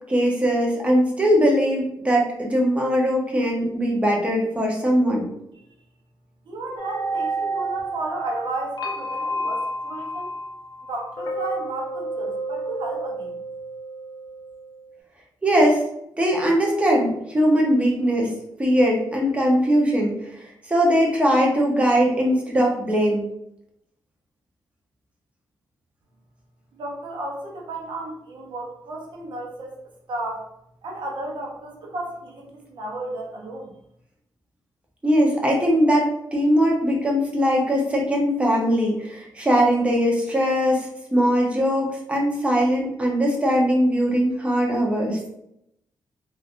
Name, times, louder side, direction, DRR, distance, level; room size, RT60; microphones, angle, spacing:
voice 1, 0.1-5.3 15.4-15.8 16.2-18.3 18.6-20.1 20.7-23.2 35.0-45.2, equal, 15° right, -1 dB, 0.7 m, -20 dB
voice 2, 6.5-10.3 10.9-13.4 26.7-29.8 30.1-30.5 30.8-33.7, right 1 dB, 75° right, -1 dB, 0.7 m, -33 dB
sound 1, 6.8-14.8, right 2 dB, 55° left, 0.4 m, -30 dB
3.1 x 2.4 x 2.5 m, 0.78 s
cardioid pair, 95°, 8 cm